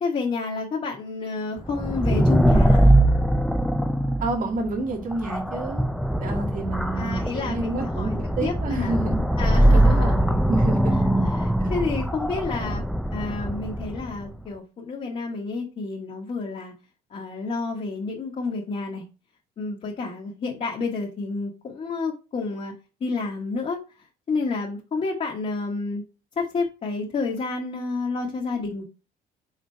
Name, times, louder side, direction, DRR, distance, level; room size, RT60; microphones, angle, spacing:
voice 1, 0.0-2.9 7.0-8.2 8.4-9.0 9.4-10.2 11.2-12.8 13.1-16.7 17.1-19.0 19.6-22.7 23.0-23.8 24.3-26.0 26.4-28.8, left 4 dB, 40° left, 1.5 m, -30 dB
sound 1, 1.7-14.2, right 1 dB, ahead, 0.5 m, -22 dB
voice 2, 4.2-5.9 6.2-9.2 9.7-11.0 11.6-11.7, right 3 dB, 55° right, 2.1 m, -29 dB
5.2 x 3.9 x 4.6 m
cardioid pair, 110°, 17 cm